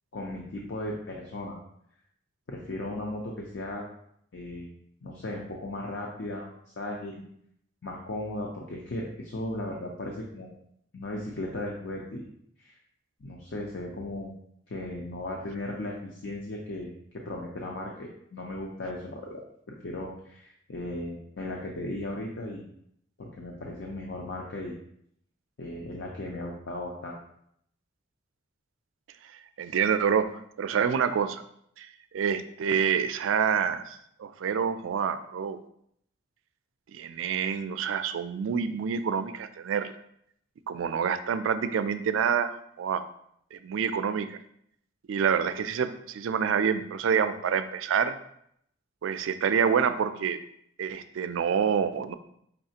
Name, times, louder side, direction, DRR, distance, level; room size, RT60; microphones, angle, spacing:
voice 1, 0.1-1.6 2.5-3.9 4.3-4.7 5.0-7.2 7.8-10.5 10.9-12.3 12.6-12.8 13.2-14.3 14.7-19.4 19.8-22.6 23.2-24.7 25.6-27.2, left 1 dB, 70° left, -1 dB, 0.6 m, -36 dB
voice 2, 29.6-31.4 31.8-31.9 32.1-35.6 36.9-39.9 40.7-43.0 43.5-44.4 45.1-48.1 49.0-50.4 50.8-52.1, right 7 dB, 90° right, 11 dB, 0.3 m, -27 dB
5.4 x 3.2 x 2.8 m, 0.71 s
head